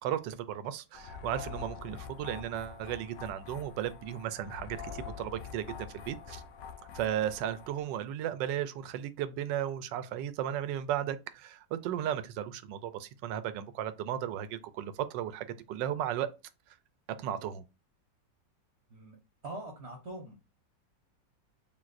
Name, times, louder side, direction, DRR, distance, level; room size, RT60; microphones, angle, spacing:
voice 1, 0.0-6.4 6.9-16.3 17.2-17.6, right 10 dB, 80° right, 1.2 m, -35 dB
sound 1, 0.9-7.8, left 6 dB, 80° left, 1.2 m, -45 dB
voice 2, 19.4-20.4, right 2 dB, 45° right, 1.0 m, -43 dB
7.1 x 2.5 x 2.5 m
omnidirectional pair, 2.0 m